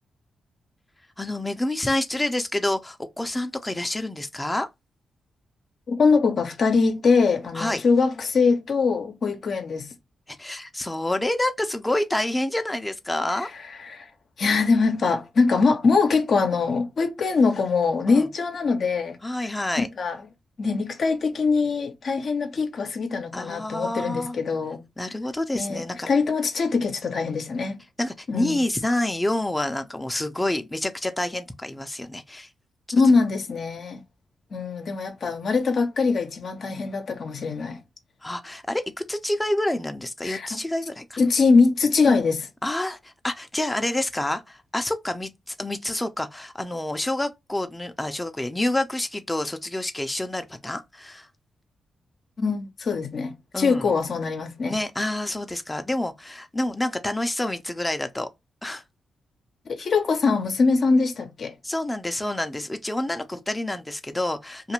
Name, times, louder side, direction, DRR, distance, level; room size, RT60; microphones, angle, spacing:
voice 1, 1.2-4.7 7.5-7.8 10.3-13.5 18.1-18.3 19.2-19.9 23.3-24.4 25.0-26.1 28.0-32.5 38.2-38.8 39.1-41.2 42.0-42.2 42.6-51.3 53.5-53.9 54.7-58.3 58.6-58.8 61.6-64.7, left 1 dB, 15° left, 0.6 m, -28 dB
voice 2, 5.9-9.9 13.8-14.1 14.4-19.2 20.0-20.2 20.6-24.8 25.5-27.8 28.3-28.6 32.9-34.0 34.5-37.8 40.2-40.5 41.2-42.5 52.4-54.7 59.7-61.5, left 4 dB, 65° left, 0.7 m, -22 dB
2.6 x 2.5 x 2.9 m
supercardioid pair, 50°, 0 cm